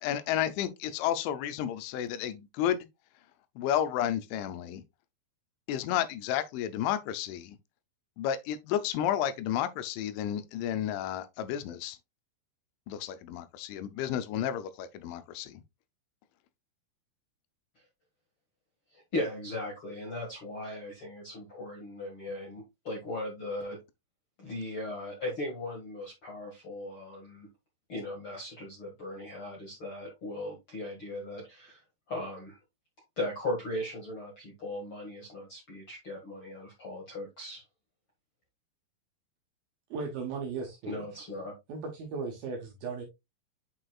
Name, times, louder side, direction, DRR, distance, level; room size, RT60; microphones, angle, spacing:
voice 1, 0.0-2.9 3.6-4.8 5.7-7.6 8.2-12.0 12.9-15.6, left 10 dB, 85° left, 3.0 m, -32 dB
voice 2, 18.9-23.8 24.4-27.5 27.9-32.6 33.2-37.6 40.9-41.5, left 1 dB, 55° left, 1.4 m, -38 dB
voice 3, 39.9-41.0 41.7-43.0, right 4 dB, 70° right, 2.3 m, -36 dB
8.7 x 4.8 x 2.3 m
omnidirectional pair, 5.4 m